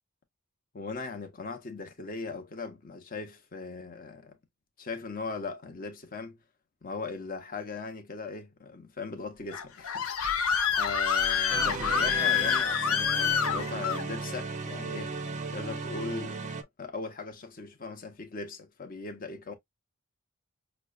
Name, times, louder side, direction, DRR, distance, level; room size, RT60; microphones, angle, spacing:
voice 1, 0.7-4.4 4.8-6.4 6.8-15.2 15.5-16.5 16.8-19.5, left 4 dB, 40° left, 0.8 m, -39 dB
Screaming, 9.5-14.0, left 7 dB, 75° left, 0.7 m, -27 dB
sound 1, 11.5-16.6, right 4 dB, 35° right, 0.4 m, -36 dB
5.9 x 2.1 x 2.3 m
head